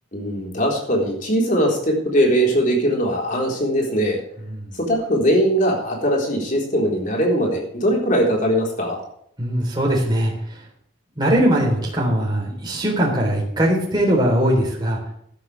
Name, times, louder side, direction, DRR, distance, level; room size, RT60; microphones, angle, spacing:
voice 1, 0.1-4.2 4.7-9.0, equal, 40° left, -1 dB, 4.0 m, -20 dB
voice 2, 9.4-10.3 11.2-15.0, right 1 dB, 20° right, -2 dB, 3.7 m, -20 dB
14.0 x 12.0 x 3.4 m, 0.69 s
head